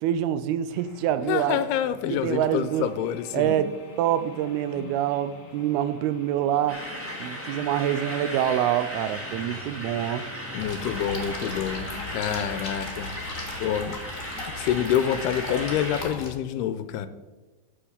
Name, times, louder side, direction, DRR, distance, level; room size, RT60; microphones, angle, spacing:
voice 1, 0.0-1.6 2.1-2.9 3.3-3.7 4.0-6.8 7.2-10.2, right 11 dB, 80° right, 13 dB, 2.4 m, -26 dB
sound 1, 0.7-12.3, left 3 dB, 50° left, 2.7 m, -48 dB
voice 2, 1.2-3.6 4.8-4.9 10.5-13.1 13.6-14.0 14.6-17.1, left 10 dB, 85° left, 12 dB, 2.6 m, -27 dB
sound 2, 6.7-16.0, equal, 5° right, 1.2 m, -36 dB
sound 3, 10.6-16.3, left 2 dB, 25° left, 2.0 m, -37 dB
12.0 x 6.9 x 7.2 m, 1.2 s
omnidirectional pair, 4.7 m